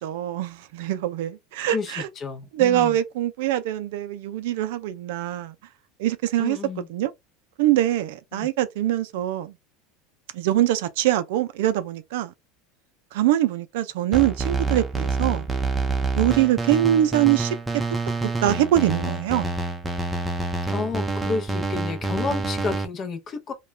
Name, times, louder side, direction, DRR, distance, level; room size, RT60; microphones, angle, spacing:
voice 1, 0.0-2.1 2.5-5.5 6.0-6.6 6.9-7.1 7.6-9.5 10.3-12.3 13.1-15.5 16.2-17.6 18.4-19.5, right 13 dB, 75° right, 0.4 m, -23 dB
voice 2, 1.6-3.0 6.4-6.9 8.3-8.5 20.7-23.5, left 4 dB, 35° left, 0.7 m, -31 dB
sound 1, 14.1-22.8, right 3 dB, 10° right, 0.5 m, -27 dB
2.3 x 2.2 x 3.1 m
supercardioid pair, 105°, 0 cm